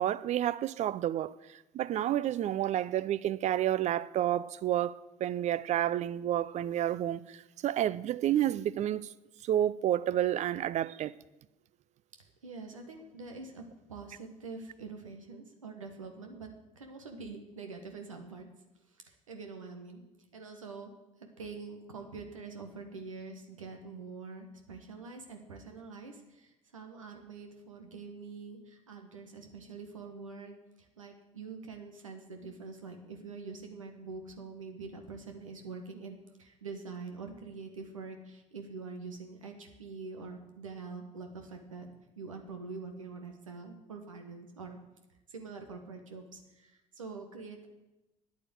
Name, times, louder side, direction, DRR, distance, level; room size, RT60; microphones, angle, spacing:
voice 1, 0.0-9.1 9.4-11.1, right 12 dB, 45° right, 0.5 m, -30 dB
voice 2, 12.4-16.5 16.7-18.5 19.1-20.0 20.3-20.9 21.2-41.9 42.2-44.8 45.3-47.7, right 4 dB, 85° right, 1.5 m, -45 dB
9.5 x 8.6 x 7.8 m
hypercardioid pair, 60°, 17 cm